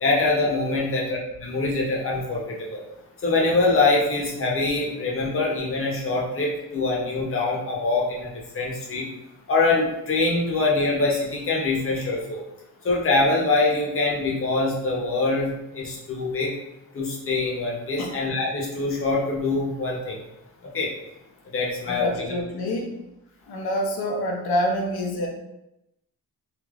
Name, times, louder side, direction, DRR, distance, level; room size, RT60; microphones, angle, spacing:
voice 1, 0.0-2.8 3.2-9.1 9.5-12.4 12.8-16.5 16.9-20.2 20.6-20.9 21.4-22.3, left 3 dB, 35° left, -3 dB, 0.8 m, -24 dB
voice 2, 21.9-22.9 23.5-25.3, equal, 90° left, 0 dB, 0.7 m, -26 dB
3.3 x 2.8 x 2.4 m, 0.88 s
wide cardioid pair, 155°, 37 cm